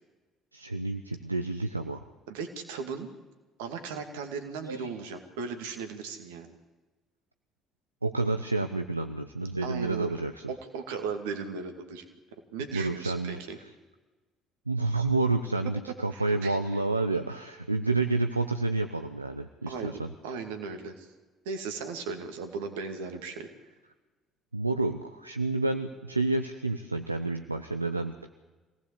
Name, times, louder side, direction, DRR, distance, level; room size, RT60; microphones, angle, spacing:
voice 1, 0.5-2.0 4.7-4.9 8.0-10.5 12.7-13.4 14.7-20.1 24.5-28.3, right 3 dB, 90° right, 7 dB, 0.7 m, -29 dB
voice 2, 2.3-3.1 3.6-6.5 9.6-10.2 10.5-12.0 12.5-13.6 16.1-16.6 19.7-21.1 21.5-23.5, right 5 dB, 70° right, 6 dB, 2.4 m, -37 dB
25.0 x 18.0 x 8.4 m, 1.3 s
figure-of-eight pair, 50°, 0 cm